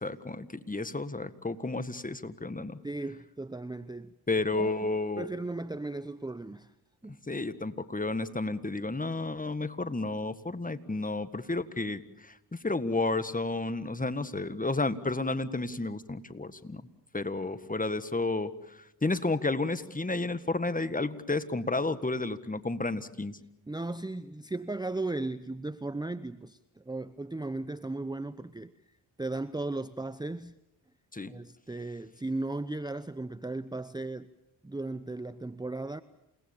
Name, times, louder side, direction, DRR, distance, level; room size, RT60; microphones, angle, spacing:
voice 1, 0.0-2.8 4.3-5.3 7.3-16.8 17.1-23.4 31.1-31.3, left 2 dB, 15° left, 12 dB, 1.7 m, -32 dB
voice 2, 2.8-4.1 4.6-4.9 5.2-6.7 7.0-7.2 23.7-28.7 29.2-30.6 31.2-34.3 34.6-36.0, right 2 dB, 10° right, 14 dB, 0.8 m, -36 dB
28.5 x 19.0 x 7.2 m, 0.86 s
hypercardioid pair, 45°, 48 cm